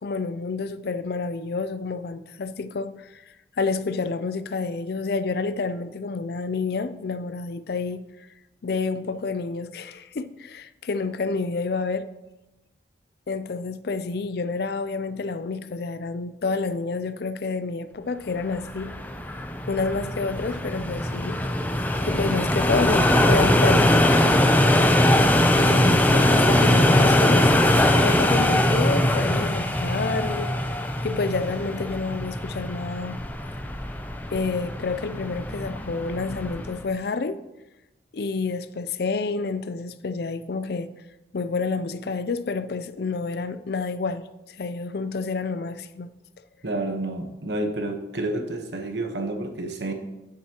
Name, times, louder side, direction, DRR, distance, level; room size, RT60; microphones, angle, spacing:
voice 1, 0.0-3.2 3.6-8.0 8.6-12.1 13.3-18.9 19.7-21.4 22.1-24.1 25.6-27.5 28.0-30.7 31.0-33.2 34.3-37.4 38.1-40.9 41.3-44.2 44.6-46.1, left 4 dB, 60° left, 0.4 m, -29 dB
sound 1, 18.5-36.8, left 1 dB, 10° left, 0.5 m, -21 dB
voice 2, 46.6-49.9, right 2 dB, 70° right, 1.1 m, -29 dB
9.5 x 8.5 x 2.9 m
head